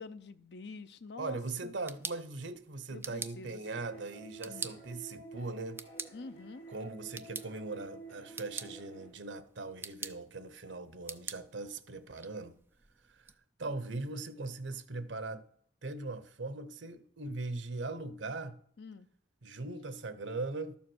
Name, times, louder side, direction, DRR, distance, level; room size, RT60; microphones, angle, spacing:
voice 1, 0.0-1.7 2.9-3.9 4.4-4.8 6.1-6.7 18.8-19.1, left 4 dB, 65° left, 0.7 m, -47 dB
voice 2, 1.2-5.8 6.7-12.5 13.1-13.3 13.6-15.4 15.8-18.6 19.4-20.8, right 3 dB, 90° right, 0.9 m, -40 dB
sound 1, 1.6-13.3, right 4 dB, 10° right, 0.5 m, -47 dB
sound 2, 3.6-9.1, right 4 dB, 40° left, 3.8 m, -50 dB
12.5 x 7.3 x 6.3 m
head